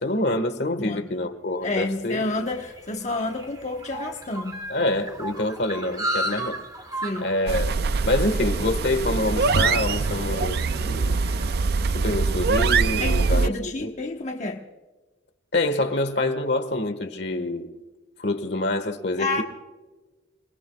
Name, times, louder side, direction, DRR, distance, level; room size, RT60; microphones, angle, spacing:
voice 1, 0.0-2.2 4.7-6.6 6.9-7.8 8.1-11.2 11.9-13.5 13.8-13.9 15.5-17.7 18.2-19.4, left 2 dB, 65° left, 1.5 m, -26 dB
voice 2, 0.8-1.2 1.6-4.6 7.0-7.3 13.0-14.6 19.2-19.4, left 2 dB, 40° left, 1.2 m, -29 dB
sound 1, 1.8-12.4, right 1 dB, 20° right, 2.2 m, -36 dB
sound 2, 7.5-13.5, right 4 dB, 55° right, 0.4 m, -23 dB
29.5 x 20.5 x 2.4 m
head